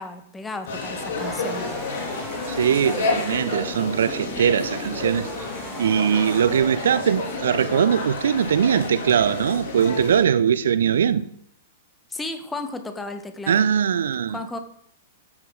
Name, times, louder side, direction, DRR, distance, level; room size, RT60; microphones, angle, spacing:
voice 1, 0.0-1.7 12.1-13.6 14.3-14.6, left 2 dB, 10° left, 1.5 m, -34 dB
sound 1, 0.7-10.2, left 3 dB, 55° left, 3.2 m, -30 dB
sound 2, 1.2-9.3, right 2 dB, 5° right, 1.6 m, -40 dB
voice 2, 2.5-5.3 5.8-11.3 13.5-14.4, right 8 dB, 65° right, 0.6 m, -21 dB
13.0 x 8.9 x 4.0 m
figure-of-eight pair, 100°, 0 cm